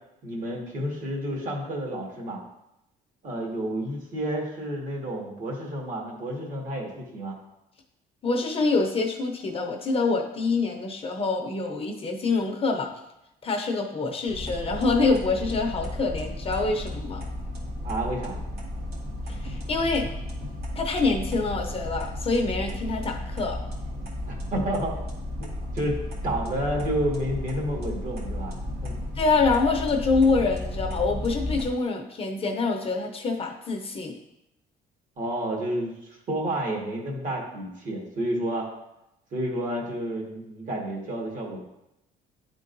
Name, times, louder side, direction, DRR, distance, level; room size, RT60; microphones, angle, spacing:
voice 1, 0.2-2.4 3.2-7.4 17.8-18.4 24.3-25.0 25.4-25.5 25.7-28.9 35.2-35.9 36.3-38.7 39.3-41.6, right 1 dB, 50° right, 0 dB, 1.8 m, -30 dB
voice 2, 8.2-12.9 13.4-17.2 19.4-20.0 20.8-23.6 29.2-34.2, left 3 dB, 35° left, 2 dB, 0.7 m, -25 dB
sound 1, 14.3-31.7, left 1 dB, 70° right, 1.8 m, -34 dB
10.0 x 3.8 x 2.6 m, 0.87 s
cardioid pair, 110°, 17 cm